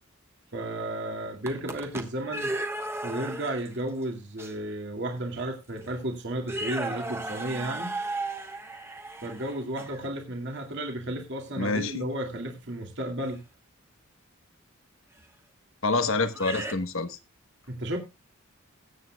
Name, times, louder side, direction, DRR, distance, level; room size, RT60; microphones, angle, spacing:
voice 1, 0.5-2.5 3.0-7.9 9.2-13.4 17.7-18.0, right 1 dB, 55° right, 2.3 m, -33 dB
sound 1, 1.3-3.8 4.4-4.5 5.4-5.5 5.8-6.0 6.4-10.1 13.2-13.4 15.2-15.3 16.3-16.7, right 2 dB, 10° right, 1.2 m, -35 dB
voice 2, 11.6-12.0 15.8-17.2, left 3 dB, 70° left, 1.3 m, -27 dB
20.5 x 8.6 x 2.3 m
head